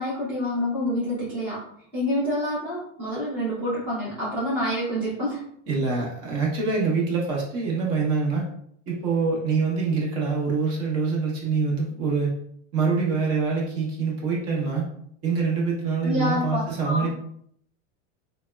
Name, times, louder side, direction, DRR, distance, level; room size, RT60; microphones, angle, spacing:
voice 1, 0.0-1.6 1.9-5.5 16.0-17.1, equal, 5° right, -9 dB, 0.5 m, -27 dB
voice 2, 5.7-8.5 8.9-12.3 12.7-14.9 15.2-17.1, right 4 dB, 35° right, -3 dB, 0.8 m, -25 dB
3.3 x 2.1 x 2.2 m, 0.68 s
supercardioid pair, 155°, 40 cm